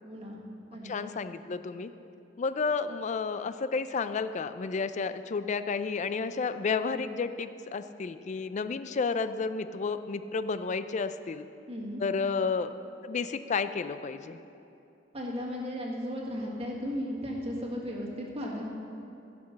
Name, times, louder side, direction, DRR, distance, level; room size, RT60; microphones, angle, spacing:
voice 1, 0.0-0.4 0.7-0.9 11.7-12.0 15.1-18.6, equal, 35° right, -2 dB, 1.7 m, -35 dB
voice 2, 0.8-1.9 2.4-11.5 12.0-12.7 13.0-14.4, left 4 dB, 40° left, 12 dB, 0.4 m, -31 dB
14.5 x 6.0 x 6.4 m, 2.8 s
head